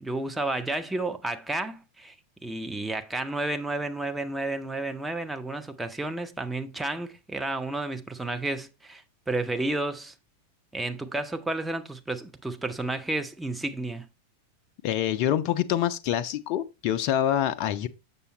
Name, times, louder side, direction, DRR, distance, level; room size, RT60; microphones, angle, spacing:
voice 1, 0.0-2.1 2.4-10.1 10.7-14.0, right 2 dB, 5° right, 0.7 m, -31 dB
voice 2, 14.8-17.9, left 11 dB, 45° left, 0.5 m, -26 dB
6.9 x 6.8 x 3.0 m
figure-of-eight pair, 90°, 0 cm